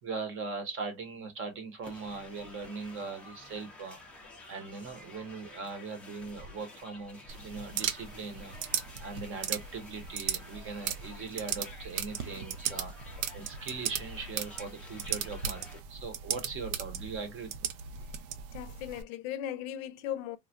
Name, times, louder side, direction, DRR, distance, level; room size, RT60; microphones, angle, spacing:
voice 1, 0.0-4.0 4.5-12.9 13.3-17.7, right 4 dB, 30° right, 0.7 m, -40 dB
sound 1, 1.8-15.8, left 2 dB, 5° left, 0.4 m, -51 dB
sound 2, 7.3-19.0, right 9 dB, 75° right, 0.7 m, -37 dB
voice 2, 18.5-20.4, left 11 dB, 65° left, 0.6 m, -37 dB
3.3 x 2.1 x 2.4 m
cardioid pair, 160°, 44 cm